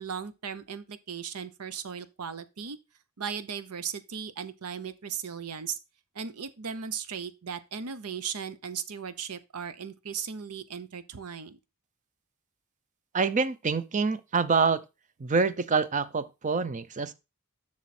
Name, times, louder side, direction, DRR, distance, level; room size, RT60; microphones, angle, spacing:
voice 1, 0.0-2.8 3.2-5.8 6.1-11.6, right 7 dB, 80° right, 0.8 m, -37 dB
voice 2, 13.1-14.8 15.2-17.1, right 4 dB, 35° right, 0.6 m, -26 dB
7.2 x 6.4 x 4.3 m
head